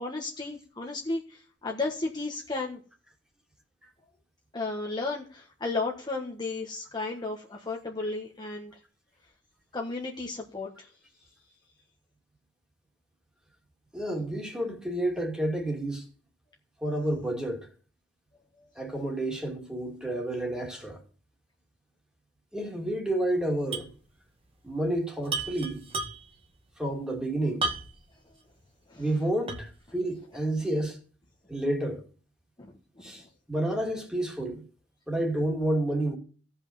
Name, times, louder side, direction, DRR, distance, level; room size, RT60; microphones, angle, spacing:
voice 1, 0.0-2.8 4.5-8.7 9.7-10.9 18.6-18.7 28.9-29.1 32.6-32.7 33.0-33.3, left 3 dB, 25° left, 1.4 m, -34 dB
voice 2, 13.9-16.0 16.8-17.7 18.8-21.0 22.5-23.9 24.6-25.8 26.8-27.7 29.0-31.0 31.5-32.0 33.0-33.2 33.5-34.6 35.1-36.2, right 1 dB, 5° right, 2.5 m, -30 dB
sound 1, 23.7-24.0 24.2-24.3 25.2-26.4 27.6-28.1 28.6-28.7 29.5-29.8, right 3 dB, 30° right, 1.8 m, -33 dB
15.5 x 5.5 x 7.2 m
head